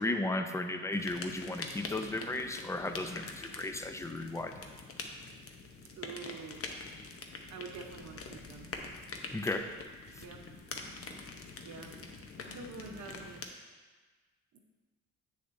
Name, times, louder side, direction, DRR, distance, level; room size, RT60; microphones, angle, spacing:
voice 1, 0.0-4.5 9.3-9.7, left 2 dB, 10° left, 7 dB, 0.5 m, -35 dB
sound 1, 0.9-13.5, left 4 dB, 50° left, 0.8 m, -45 dB
voice 2, 5.9-6.7 7.5-8.7 10.2-10.4 11.6-11.9 12.5-13.4 14.5-14.6, right 4 dB, 70° right, 3 dB, 1.0 m, -46 dB
8.2 x 6.5 x 2.7 m, 1.4 s
cardioid pair, 90°, 30 cm